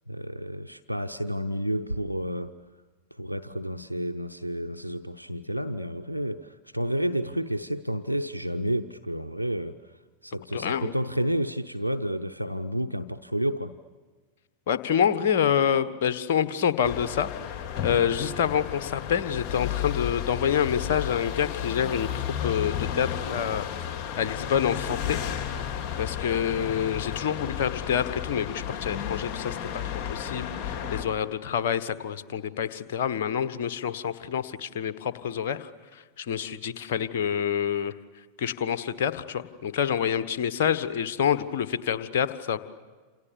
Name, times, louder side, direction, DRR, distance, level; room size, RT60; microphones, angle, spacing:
voice 1, 0.1-2.5 3.1-13.8, equal, 90° left, 10 dB, 0.7 m, -30 dB
voice 2, 10.5-10.9 14.7-17.3 17.8-23.7 24.2-25.2 26.0-37.9 38.4-42.6, left 8 dB, 55° left, 12 dB, 1.4 m, -27 dB
sound 1, 16.8-31.0, left 9 dB, 35° left, 4.2 m, -33 dB
28.5 x 28.0 x 7.1 m, 1.4 s
figure-of-eight pair, 90°, 0 cm